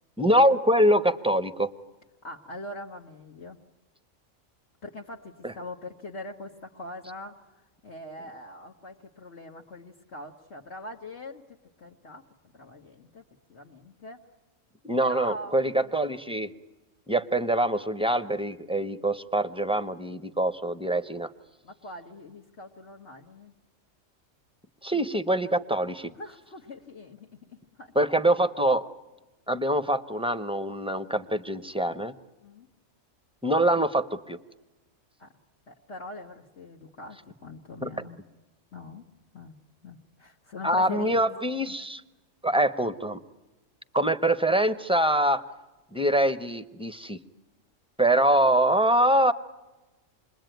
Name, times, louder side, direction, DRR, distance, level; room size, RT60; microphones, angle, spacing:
voice 1, 0.2-1.7 5.4-5.5 14.8-16.5 17.1-21.3 24.8-26.1 27.9-28.8 29.5-32.1 33.4-34.4 37.8-37.9 40.6-42.0 42.4-43.2 43.9-45.4 45.9-47.2 48.0-49.3, right 1 dB, 5° right, 12 dB, 0.7 m, -24 dB
voice 2, 2.2-3.6 4.8-7.5 7.8-12.2 12.5-13.2 13.5-14.2 15.0-15.9 21.6-23.5 26.2-28.1 32.4-32.7 35.2-35.3 35.7-38.2 38.7-39.0 39.3-39.6 39.8-41.2 41.7-41.8, left 1 dB, 55° left, -1 dB, 1.6 m, -42 dB
28.5 x 21.5 x 9.2 m, 1.1 s
omnidirectional pair, 1.4 m